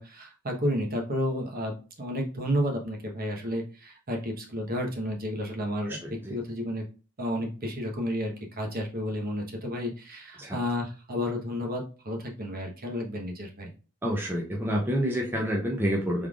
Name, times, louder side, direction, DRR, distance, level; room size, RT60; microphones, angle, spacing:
voice 1, 0.0-6.0 6.3-6.8 7.2-13.7, equal, 45° right, 1 dB, 1.0 m, -31 dB
voice 2, 5.9-6.3 10.4-10.6 14.0-16.3, equal, 10° right, -2 dB, 0.6 m, -28 dB
3.6 x 3.3 x 2.3 m, 0.35 s
head